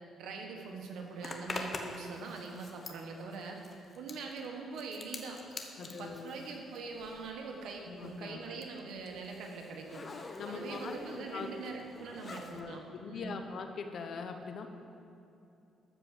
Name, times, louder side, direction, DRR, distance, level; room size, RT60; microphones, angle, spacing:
voice 1, 0.2-3.6 3.9-5.4 5.8-10.0 10.4-12.8 13.1-13.4, right 4 dB, 80° right, 1 dB, 1.5 m, -43 dB
Zipper (clothing), 1.2-7.4 7.6-12.6, left 3 dB, 35° left, 1.1 m, -45 dB
voice 2, 5.8-6.3 7.9-8.4 10.4-11.0 11.3-11.5 12.5-14.7, left 5 dB, 60° left, 6 dB, 0.9 m, -42 dB
13.0 x 4.7 x 7.5 m, 2.7 s
cardioid pair, 90°, 0 cm